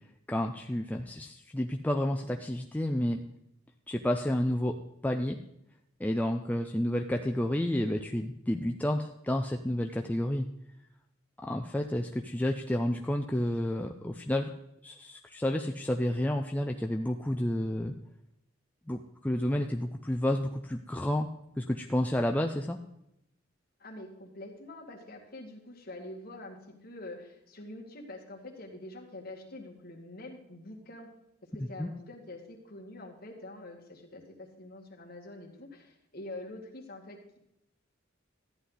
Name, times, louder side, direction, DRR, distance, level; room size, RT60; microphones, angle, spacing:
voice 1, 0.3-3.2 3.9-4.8 5.0-5.4 6.0-10.5 11.4-14.5 14.8-17.9 18.9-21.3 21.6-22.8 31.8-31.9, left 1 dB, 10° left, 3 dB, 0.4 m, -30 dB
voice 2, 23.8-31.1 31.4-37.4, left 1 dB, 45° left, 0 dB, 2.0 m, -45 dB
14.0 x 9.9 x 4.0 m, 0.82 s
head